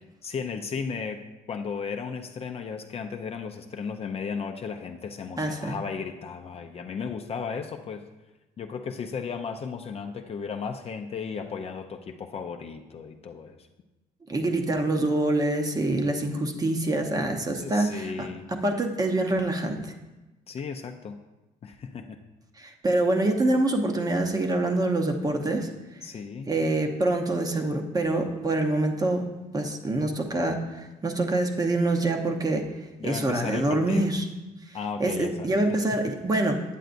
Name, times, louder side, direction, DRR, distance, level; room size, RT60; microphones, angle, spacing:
voice 1, 0.2-1.2 1.5-8.0 8.6-13.7 17.6-18.5 20.5-21.2 21.6-22.2 26.0-26.5 33.0-34.1 34.7-35.8, left 5 dB, 35° left, 4 dB, 0.5 m, -35 dB
voice 2, 5.4-5.8 14.3-19.8 22.6-25.7 26.5-29.2 29.5-32.7 33.0-34.3 34.7-36.6, right 2 dB, 20° right, 4 dB, 0.8 m, -26 dB
9.1 x 7.7 x 2.6 m, 1.1 s
cardioid pair, 110°, 17 cm